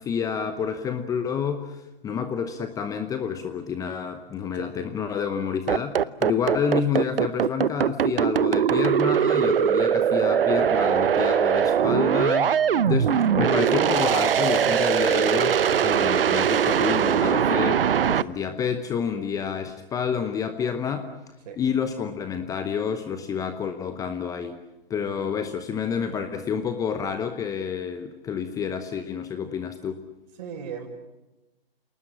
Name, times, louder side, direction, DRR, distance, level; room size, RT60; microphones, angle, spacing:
voice 1, 0.0-12.6 12.8-21.0 21.6-24.6 24.9-30.0, left 7 dB, 10° left, 9 dB, 0.9 m, -29 dB
sound 1, 5.7-18.2, right 8 dB, 65° right, 0.9 m, -21 dB
voice 2, 13.0-13.3 21.5-21.6 25.0-25.4 30.4-30.9, right 7 dB, 45° right, 6 dB, 5.6 m, -38 dB
28.5 x 19.5 x 8.6 m, 1.0 s
hypercardioid pair, 135°, 30 cm